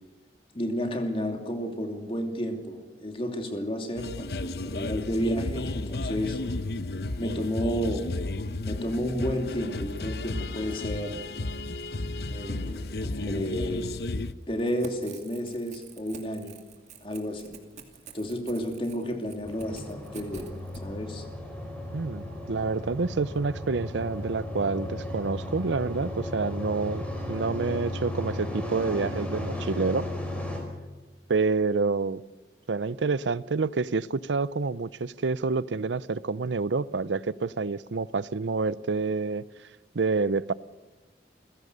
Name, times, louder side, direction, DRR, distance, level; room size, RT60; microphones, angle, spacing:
voice 1, 0.5-6.4 7.2-8.1 8.6-11.2 12.3-14.0 14.5-16.6 17.0-17.5 18.1-20.5 20.8-21.2, equal, 30° left, 2.8 m, -31 dB
sound 1, 4.0-14.3, left 2 dB, 65° left, 0.8 m, -33 dB
Crackle / Tearing, 14.5-20.8, right 4 dB, 40° right, 2.5 m, -48 dB
sound 2, 19.4-30.6, left 1 dB, 5° left, 4.9 m, -35 dB
voice 2, 21.9-30.1 31.3-32.2 32.7-39.4 39.9-40.5, right 4 dB, 85° right, 0.6 m, -28 dB
29.0 x 16.0 x 6.7 m
head